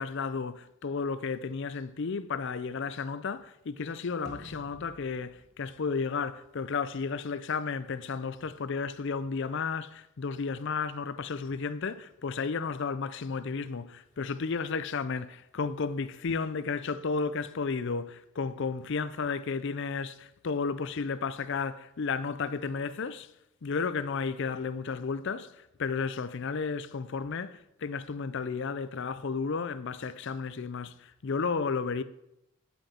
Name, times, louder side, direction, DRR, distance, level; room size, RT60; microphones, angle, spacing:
voice 1, 0.0-23.3 23.6-32.0, left 5 dB, 55° left, 0.5 m, -33 dB
sound 1, 4.3-6.7, right 2 dB, 50° right, 1.0 m, -52 dB
9.9 x 7.9 x 4.3 m
head